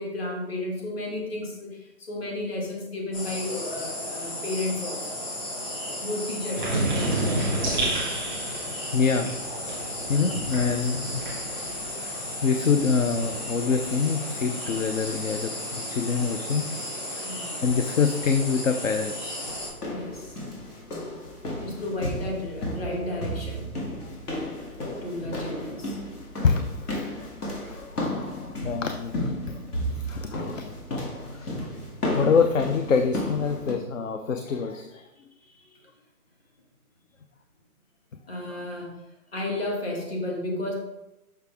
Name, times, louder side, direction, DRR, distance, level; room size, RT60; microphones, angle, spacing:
voice 1, 0.0-5.2 6.0-7.9 17.2-17.6 19.8-20.4 21.6-23.7 25.0-26.0 31.4-31.7 35.5-35.8 38.3-38.9 39.3-40.7, left 1 dB, 40° left, -1 dB, 1.9 m, -33 dB
sound 1, 3.1-19.7, left 1 dB, 25° left, 2.7 m, -34 dB
sound 2, 6.6-11.9 12.2-13.9, right 1 dB, ahead, 0.8 m, -30 dB
voice 2, 8.9-9.3 10.1-11.3 12.0-16.7 17.1-17.2 17.6-19.3 25.3-25.4 26.4-30.7 31.3-31.5 32.2-35.1, left 5 dB, 60° left, 6 dB, 0.6 m, -26 dB
sound 3, 19.4-33.7, left 1 dB, 85° left, 2.4 m, -33 dB
6.7 x 5.9 x 3.4 m, 0.92 s
hypercardioid pair, 175°, 45 cm